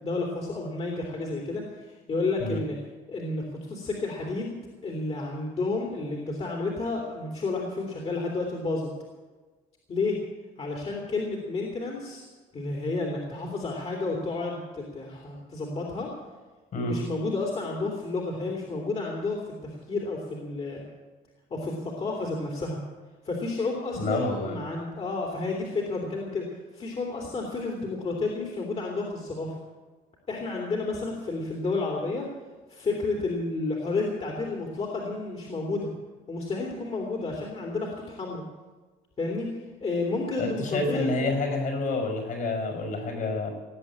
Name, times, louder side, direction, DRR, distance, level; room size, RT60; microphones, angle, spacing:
voice 1, 0.0-2.8 3.1-4.6 4.8-8.9 9.9-10.2 10.6-12.3 12.5-16.1 16.8-20.8 21.5-22.8 23.2-26.5 26.7-29.6 30.3-32.3 32.7-35.9 36.3-38.4 39.2-39.5 39.8-41.4, left 3 dB, 35° left, -1 dB, 2.9 m, -31 dB
voice 2, 24.0-24.6 40.4-43.5, left 2 dB, 55° left, 3 dB, 5.3 m, -28 dB
18.5 x 8.2 x 8.6 m, 1.3 s
cardioid pair, 110°, 17 cm